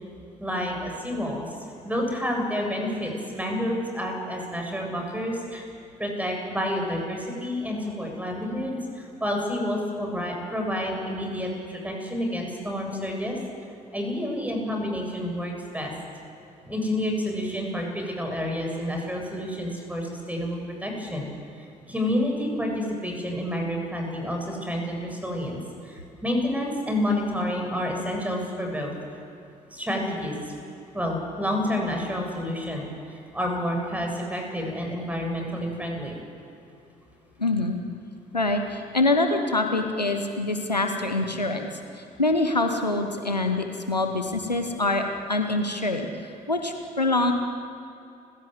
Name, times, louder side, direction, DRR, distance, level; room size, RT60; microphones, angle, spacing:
voice 1, 0.4-1.4 1.8-5.7 6.0-13.4 13.9-15.9 16.7-21.3 21.6-25.6 25.8-28.9 29.7-30.5 30.9-36.2, left 1 dB, 5° right, 1 dB, 7.5 m, -29 dB
voice 2, 37.4-37.8 38.3-41.7 41.9-47.3, left 2 dB, 90° left, 5 dB, 1.1 m, -25 dB
30.0 x 16.0 x 8.0 m, 2.8 s
figure-of-eight pair, 50°, 20 cm